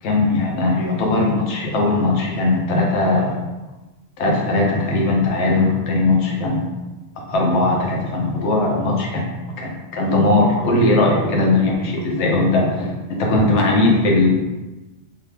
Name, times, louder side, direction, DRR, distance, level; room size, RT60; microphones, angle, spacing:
voice 1, 0.0-3.4 4.2-6.7 7.2-9.2 9.6-12.9 13.2-14.3, left 2 dB, 80° left, -1 dB, 0.9 m, -19 dB
2.6 x 2.0 x 3.1 m, 1.1 s
omnidirectional pair, 1.2 m